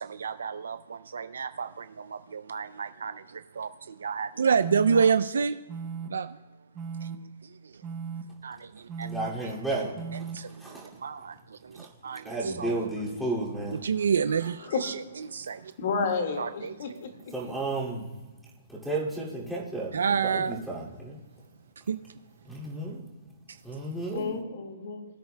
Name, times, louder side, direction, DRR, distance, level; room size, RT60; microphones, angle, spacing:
voice 1, 0.0-5.6 6.0-6.4 6.9-7.9 8.4-9.3 10.3-12.8 13.7-15.7 16.4-17.0 19.9-20.6 21.8-22.2 22.5-22.6 23.5-23.6, right 6 dB, 85° right, 0.4 m, -30 dB
sound 1, 4.6-5.0 5.7-6.1 6.8-7.2 7.8-8.2 8.9-9.3 10.0-10.4, right 6 dB, 20° right, 0.7 m, -36 dB
voice 2, 9.0-10.9 11.7-11.9 12.2-13.8 17.3-18.1 18.7-21.2 22.4-23.1 23.6-24.4, right 2 dB, ahead, 2.3 m, -33 dB
voice 3, 15.8-17.3 24.1-25.1, left 5 dB, 55° left, 1.8 m, -31 dB
20.5 x 9.3 x 2.2 m
hypercardioid pair, 160°, 0 cm